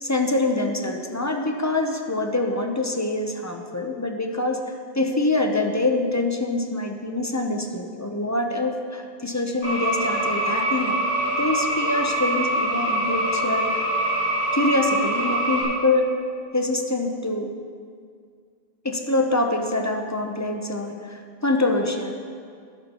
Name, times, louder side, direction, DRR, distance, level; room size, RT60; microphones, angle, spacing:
voice 1, 0.0-4.6 4.9-11.0 11.4-13.9 14.5-16.0 16.5-17.5 18.8-22.1, left 2 dB, 20° left, 3 dB, 0.6 m, -25 dB
sound 1, 9.6-15.6, right 1 dB, 45° left, 3.4 m, -24 dB
12.5 x 11.0 x 2.9 m, 2.1 s
omnidirectional pair, 1.1 m